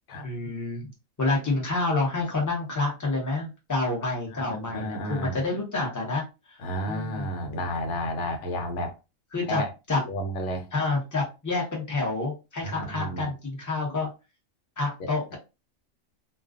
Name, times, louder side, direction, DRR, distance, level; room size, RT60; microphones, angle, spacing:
voice 1, 0.2-0.9 1.2-6.2 6.5-6.6 6.9-7.3 9.3-10.0 10.7-14.1 14.8-15.4, left 3 dB, 15° left, 0.7 m, -28 dB
voice 2, 4.3-5.4 6.6-9.0 9.5-9.7 10.1-10.7 12.6-13.3 15.0-15.1, equal, 65° left, 0.9 m, -32 dB
2.4 x 2.2 x 2.4 m
omnidirectional pair, 1.4 m